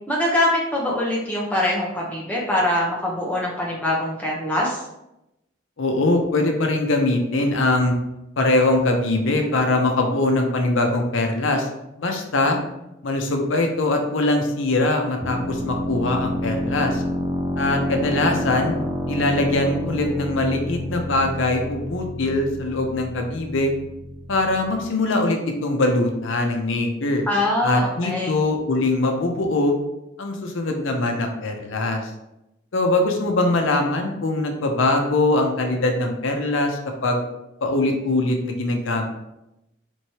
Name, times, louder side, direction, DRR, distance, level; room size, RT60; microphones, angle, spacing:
voice 1, 0.1-4.9 27.3-28.4, left 1 dB, 10° left, -4 dB, 0.8 m, -23 dB
voice 2, 5.8-7.9 8.4-11.7 12.0-12.6 13.0-17.0 17.6-18.8 19.1-23.7 24.3-27.2 27.6-29.7 30.2-32.0 32.7-37.2 37.6-39.0, left 2 dB, 80° left, 3 dB, 0.6 m, -22 dB
sound 1, 15.2-24.8, equal, 15° right, 0.3 m, -29 dB
4.4 x 3.1 x 2.8 m, 0.89 s
head